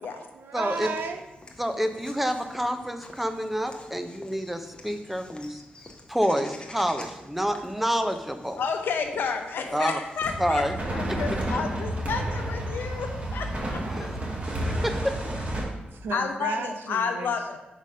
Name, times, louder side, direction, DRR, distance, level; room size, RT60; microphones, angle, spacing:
voice 1, 0.0-1.2 15.7-17.6, right 4 dB, 90° right, 7 dB, 0.5 m, -35 dB
voice 2, 0.5-0.9 1.6-5.6 6.1-8.6 9.7-10.0 10.4-10.7 13.9-14.1 14.5-15.2, equal, 5° right, 7 dB, 0.5 m, -28 dB
Walk footsteps / Bird vocalization bird call bird song, 0.6-10.6, left 2 dB, 30° left, 0.8 m, -47 dB
voice 3, 8.6-10.6 10.9-13.8 15.6-15.7 16.1-17.6, left 5 dB, 80° left, 5 dB, 0.7 m, -30 dB
sound 1, 10.2-15.6, right 1 dB, 40° right, 1.5 m, -30 dB
4.9 x 3.9 x 5.5 m, 1.0 s
cardioid pair, 90°, 3 cm